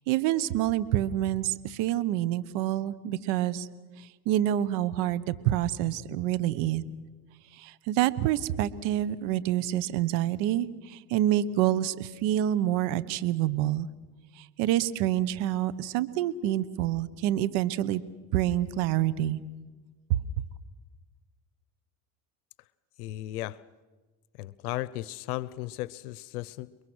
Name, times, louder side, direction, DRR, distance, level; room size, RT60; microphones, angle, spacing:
voice 1, 0.1-3.7 4.3-6.8 7.6-13.9 14.4-18.0 18.3-19.4 20.1-20.2, right 12 dB, 70° right, 15 dB, 1.3 m, -27 dB
voice 2, 23.0-23.6 24.4-26.8, left 16 dB, 90° left, 19 dB, 0.7 m, -35 dB
30.0 x 22.0 x 6.4 m, 1.3 s
supercardioid pair, 95°, 43 cm